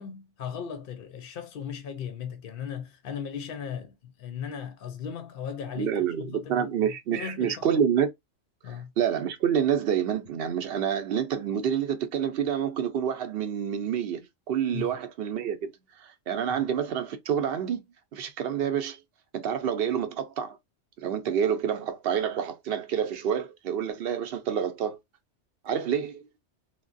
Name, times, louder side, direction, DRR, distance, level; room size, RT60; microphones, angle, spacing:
voice 1, 0.0-7.8 8.6-8.9 14.7-15.0 16.5-16.6, left 7 dB, 60° left, 0.7 m, -37 dB
voice 2, 5.8-8.1 8.7-15.7 16.0-17.8 18.1-19.0 19.3-20.6 21.0-25.0 25.6-26.2, right 8 dB, 65° right, 0.7 m, -28 dB
3.2 x 2.1 x 2.5 m
omnidirectional pair, 1.2 m